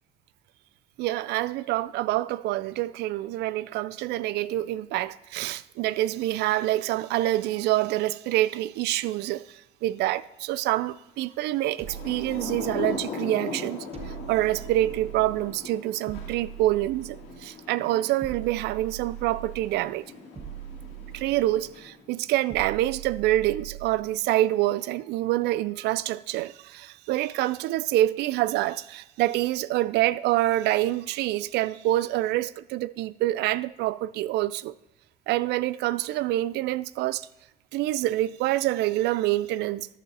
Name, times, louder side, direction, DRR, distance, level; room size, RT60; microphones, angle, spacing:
voice 1, 1.0-20.0 21.1-34.7 35.3-37.3 37.7-39.9, right 15 dB, 80° right, 0.4 m, -26 dB
Thunder / Rain, 11.6-22.2, left 4 dB, 85° left, 2.4 m, -40 dB
sound 1, 11.8-13.1 13.9-15.6 16.1-17.5 18.2-19.8 20.4-21.8 22.5-24.1, right 11 dB, 35° right, 1.0 m, -41 dB
11.5 x 7.3 x 4.0 m
cardioid pair, 110°, 17 cm